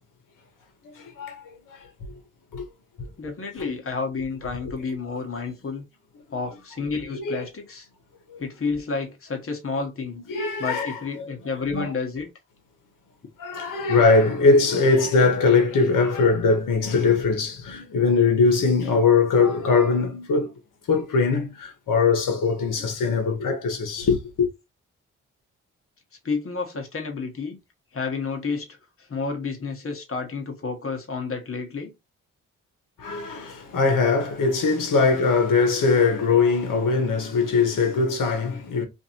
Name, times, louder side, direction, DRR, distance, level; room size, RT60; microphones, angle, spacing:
voice 1, 0.8-1.9 2.5-2.6 3.0-3.1 7.1-7.4 8.3-8.4 10.3-11.3 11.7-11.9 13.4-20.5 20.9-24.5 33.0-38.8, left 4 dB, 60° left, 1.1 m, -21 dB
voice 2, 3.2-5.8 6.3-7.9 8.4-10.2 10.6-12.3 26.2-27.6 27.9-31.9, left 4 dB, 40° left, 1.1 m, -30 dB
2.6 x 2.5 x 2.9 m
hypercardioid pair, 40°, 36 cm